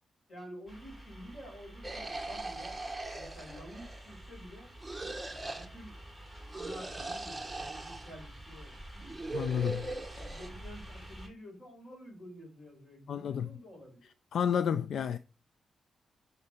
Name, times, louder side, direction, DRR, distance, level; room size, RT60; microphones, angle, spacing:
voice 1, 0.3-2.8 3.1-4.7 5.5-8.7 10.2-14.1, equal, 40° left, 6.0 m, -50 dB
sound 1, 0.7-11.3, right 1 dB, 10° left, 2.9 m, -49 dB
sound 2, 1.8-4.1 4.8-5.7 6.5-8.1 8.9-10.5, right 2 dB, 5° right, 1.0 m, -40 dB
voice 2, 9.3-9.9 13.1-13.5 14.3-15.2, left 8 dB, 70° left, 0.4 m, -30 dB
9.9 x 5.6 x 4.3 m
wide cardioid pair, 150°, 0 cm